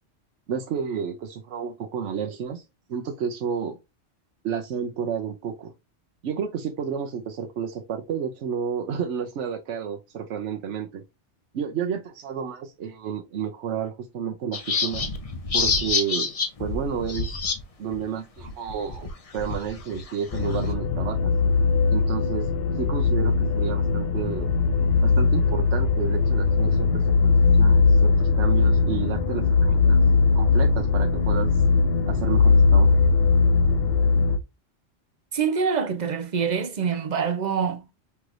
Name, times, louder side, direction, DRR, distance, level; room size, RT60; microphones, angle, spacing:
voice 1, 0.5-2.6 2.9-3.8 4.4-5.7 6.2-11.0 11.5-15.1 15.5-16.3 16.6-17.4 17.8-21.3 21.9-22.5 22.8-24.5 25.0-30.0 30.3-31.5 32.1-33.0, right 7 dB, 80° right, 1.0 m, -31 dB
sound 1, 14.5-17.6 17.9-18.0 18.4-20.7, left 4 dB, 35° left, 0.7 m, -27 dB
sound 2, 20.3-34.4, left 4 dB, 65° left, 0.9 m, -20 dB
voice 2, 35.3-37.8, right 6 dB, 45° right, 0.7 m, -25 dB
5.8 x 3.2 x 2.5 m
omnidirectional pair, 1.2 m